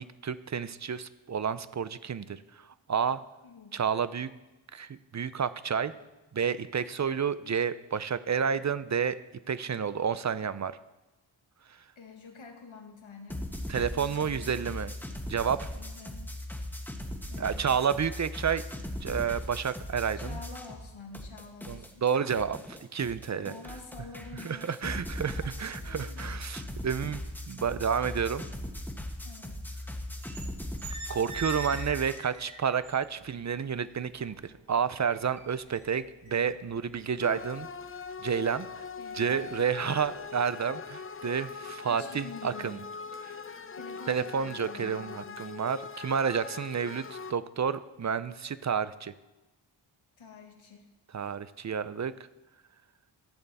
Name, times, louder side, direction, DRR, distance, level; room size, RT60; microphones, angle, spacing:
voice 1, 0.0-2.4 2.9-3.2 3.7-4.3 4.7-5.9 6.3-9.2 9.5-10.7 13.7-14.9 15.3-15.7 17.4-18.6 19.0-20.4 21.7-23.5 24.4-25.3 25.6-28.4 31.1-37.7 38.2-38.7 39.1-42.8 43.3-43.4 44.1-49.1 51.1-52.1, right 7 dB, 35° right, 15 dB, 0.6 m, -30 dB
voice 2, 3.4-3.8 11.9-13.5 13.9-14.6 15.7-16.3 17.3-17.8 20.1-22.0 23.4-26.5 29.2-29.7 39.0-39.6 41.9-42.8 43.7-45.5 50.2-50.9, left 4 dB, 75° left, 3 dB, 1.7 m, -48 dB
sound 1, 13.3-20.9 21.1-32.2, left 1 dB, 5° left, 1.5 m, -39 dB
sound 2, 30.0-30.5 30.8-33.3 33.7-34.6 35.0-38.1 38.5-38.7 39.2-39.5 39.9-40.2, right 4 dB, 90° right, 2.1 m, -43 dB
sound 3, 37.2-47.3, left 6 dB, 30° left, 0.5 m, -42 dB
14.0 x 6.7 x 4.2 m, 1.1 s
cardioid pair, 60°, 47 cm